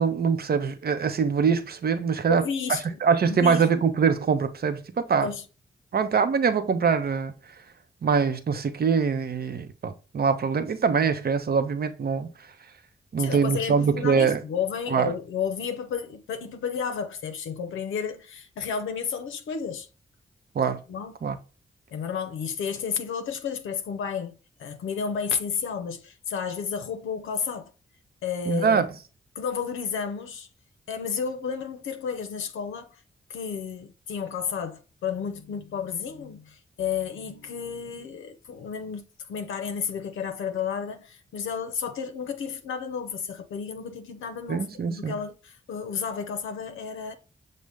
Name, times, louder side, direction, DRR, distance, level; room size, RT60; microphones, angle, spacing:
voice 1, 0.0-2.4 2.7-5.3 5.9-7.6 8.0-12.5 13.1-14.4 14.9-15.1 20.5-20.8 21.2-21.4 28.5-28.9 44.5-45.2, right 6 dB, 50° right, 0.6 m, -24 dB
voice 2, 2.3-3.7 5.2-5.4 13.2-19.9 20.9-21.1 21.9-27.7 28.2-28.8 29.4-30.5 30.9-33.0 33.3-47.2, left 6 dB, 80° left, 0.5 m, -32 dB
6.2 x 2.1 x 3.3 m
supercardioid pair, 45°, 20 cm